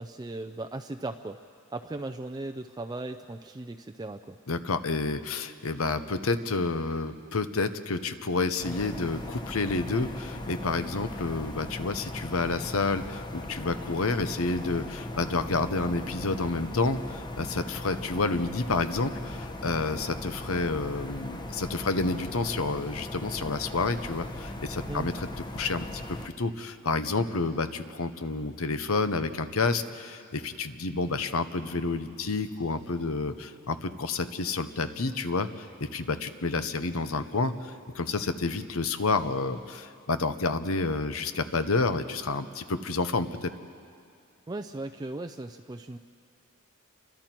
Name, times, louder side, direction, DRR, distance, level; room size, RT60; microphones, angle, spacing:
voice 1, 0.0-1.4 1.7-4.4 24.9-25.1 44.5-46.0, right 2 dB, 20° right, 7 dB, 0.4 m, -37 dB
voice 2, 4.5-25.3 25.5-43.5, left 3 dB, 70° left, 10 dB, 1.0 m, -29 dB
sound 1, 8.6-26.3, left 1 dB, 20° left, 1.0 m, -38 dB
29.5 x 24.5 x 4.5 m, 2.3 s
head